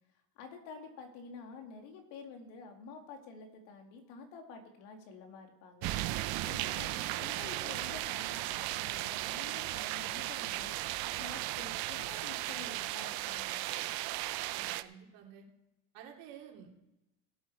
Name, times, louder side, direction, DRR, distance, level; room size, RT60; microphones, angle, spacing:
voice 1, 0.4-10.7 11.2-13.9, left 5 dB, 70° left, 4 dB, 2.5 m, -49 dB
sound 1, 5.8-14.8, right 16 dB, 50° right, 0.6 m, -36 dB
voice 2, 14.5-15.4 15.9-16.7, right 9 dB, 65° right, 0 dB, 3.0 m, -52 dB
17.0 x 8.4 x 4.7 m, 0.93 s
cardioid pair, 150°, 46 cm